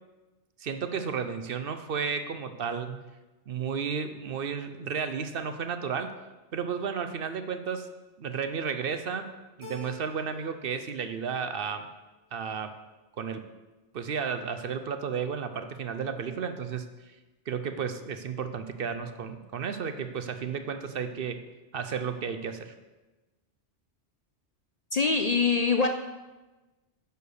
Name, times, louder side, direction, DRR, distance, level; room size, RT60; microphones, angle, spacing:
voice 1, 0.6-3.0 3.5-6.1 6.5-7.9 8.2-9.3 9.6-11.9 12.3-12.7 13.2-13.5 13.9-17.1 17.5-21.4 21.7-22.7, right 6 dB, 60° right, 9 dB, 0.8 m, -33 dB
Keyboard (musical), 9.6-10.7 11.0-11.8, left 3 dB, 25° left, 1.4 m, -48 dB
voice 2, 24.9-25.9, left 4 dB, 45° left, 5 dB, 0.5 m, -23 dB
10.0 x 4.6 x 6.4 m, 1.1 s
omnidirectional pair, 1.1 m